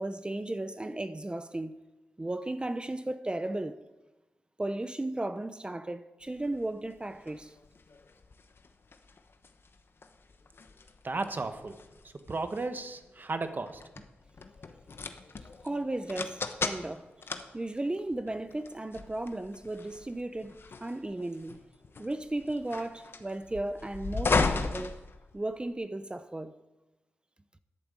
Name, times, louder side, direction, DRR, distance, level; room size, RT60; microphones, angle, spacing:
voice 1, 0.0-1.7 2.2-3.8 4.6-7.5 15.6-17.1 17.5-20.6 20.8-21.6 22.0-25.0 25.3-26.5, right 2 dB, 20° right, 0.7 m, -35 dB
sound 1, 6.4-25.7, left 4 dB, 60° left, 0.9 m, -37 dB
voice 2, 11.0-13.8, right 3 dB, 45° right, 1.2 m, -35 dB
11.0 x 8.6 x 7.4 m
cardioid pair, 70°, 4 cm